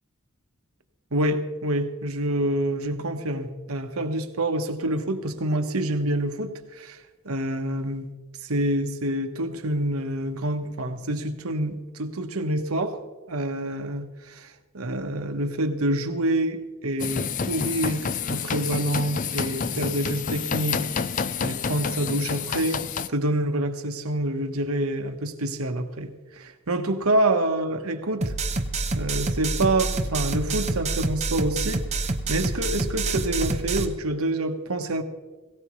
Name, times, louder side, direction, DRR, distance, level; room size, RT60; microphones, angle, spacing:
voice 1, 1.1-7.0 7.2-8.1 8.4-13.0 13.3-21.1 21.4-22.8 23.1-28.3 28.9-31.8 32.3-35.0, right 1 dB, 90° right, 6 dB, 1.3 m, -27 dB
sound 1, 17.0-23.1, left 6 dB, 35° left, 0.4 m, -29 dB
sound 2, 28.2-33.8, right 3 dB, 30° right, 0.9 m, -27 dB
18.0 x 17.0 x 3.2 m, 1.2 s
head